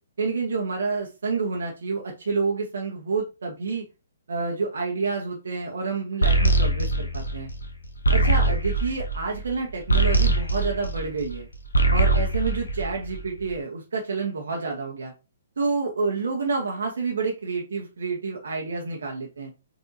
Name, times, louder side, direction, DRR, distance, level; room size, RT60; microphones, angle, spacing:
voice 1, 0.2-3.8 4.3-7.5 8.1-11.5 11.9-15.1 15.6-19.5, right 4 dB, 60° right, 0 dB, 0.9 m, -28 dB
sound 1, 6.2-11.4 11.7-13.4, right 2 dB, 70° left, 0.8 m, -22 dB
5.5 x 2.7 x 2.7 m, 0.28 s
figure-of-eight pair, 125°, 0 cm